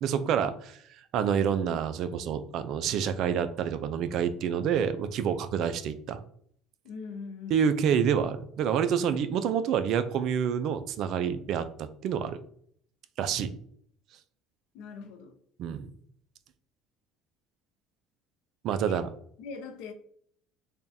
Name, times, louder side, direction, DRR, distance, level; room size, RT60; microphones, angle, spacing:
voice 1, 0.0-0.8 1.1-6.2 7.5-12.4 13.2-13.5 15.6-15.9 18.6-19.1, right 8 dB, 60° right, 11 dB, 0.4 m, -28 dB
voice 2, 6.8-7.7 14.7-15.4 18.9-19.1 19.4-19.9, left 5 dB, 75° left, 6 dB, 0.7 m, -41 dB
3.5 x 2.3 x 4.1 m, 0.64 s
supercardioid pair, 105°, 0 cm